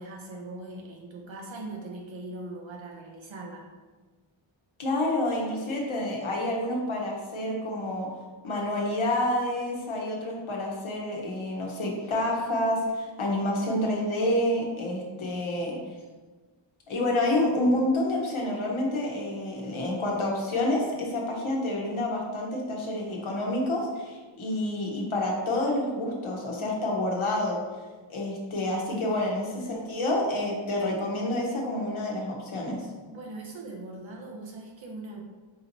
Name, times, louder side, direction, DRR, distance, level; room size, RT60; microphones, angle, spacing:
voice 1, 0.0-3.7 28.8-29.2 29.5-29.9 33.1-35.2, right 2 dB, 70° right, 1 dB, 0.7 m, -40 dB
voice 2, 4.8-8.1 8.4-15.8 16.9-27.6 28.1-32.8, left 1 dB, 80° left, -1 dB, 0.9 m, -28 dB
4.8 x 2.9 x 2.6 m, 1.3 s
wide cardioid pair, 65°, 48 cm